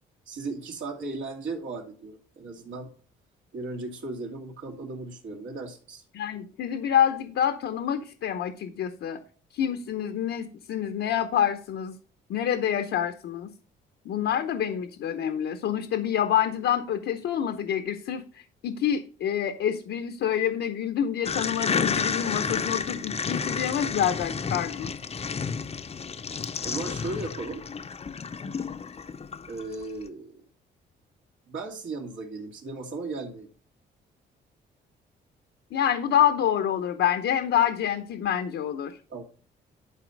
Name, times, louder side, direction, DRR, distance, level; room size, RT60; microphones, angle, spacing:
voice 1, 0.3-2.9 3.5-6.0 26.6-27.6 29.5-30.3 31.5-33.5 39.1-39.2, right 3 dB, 70° right, -1 dB, 2.6 m, -36 dB
voice 2, 6.1-9.2 9.5-12.0 12.3-13.5 14.0-24.9 35.7-39.0, left 9 dB, 70° left, 8 dB, 0.9 m, -27 dB
sound 1, 21.2-29.8, left 5 dB, 30° left, 0.7 m, -31 dB
11.0 x 4.3 x 5.2 m, 0.41 s
cardioid pair, 90°, 20 cm